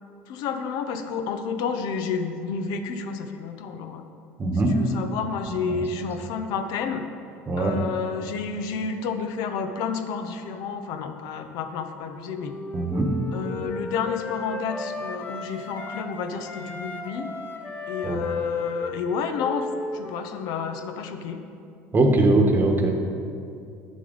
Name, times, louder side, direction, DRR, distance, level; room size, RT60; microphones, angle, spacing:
voice 1, 0.3-4.0 4.7-7.1 7.6-12.6 13.3-17.3 17.9-21.4, left 6 dB, 70° left, 7 dB, 0.7 m, -30 dB
voice 2, 4.4-4.8 5.7-5.8 7.5-7.8 12.7-13.2 18.0-18.2 21.9-23.0, right 2 dB, 30° right, 3 dB, 1.2 m, -21 dB
Wind instrument woodwind instrument, 11.7-16.1 16.4-21.0, left 1 dB, 30° left, 1.0 m, -36 dB
9.8 x 6.3 x 4.0 m, 2.5 s
supercardioid pair, 95°, 7 cm